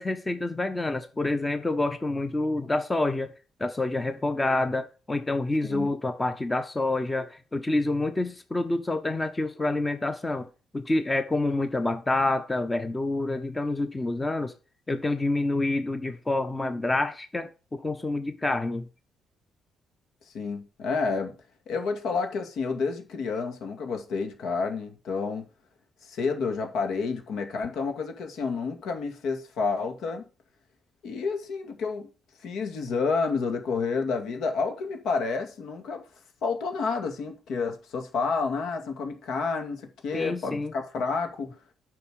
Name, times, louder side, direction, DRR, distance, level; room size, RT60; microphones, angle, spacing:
voice 1, 0.0-3.3 3.6-10.5 10.7-14.5 14.9-18.9 40.1-40.7, left 2 dB, 15° left, 0.9 m, -27 dB
voice 2, 20.3-21.4 21.7-25.5 26.0-30.2 31.0-32.1 32.4-36.0 36.4-41.6, left 4 dB, 70° left, 2.2 m, -30 dB
9.5 x 5.9 x 6.4 m
cardioid pair, 125°, 0 cm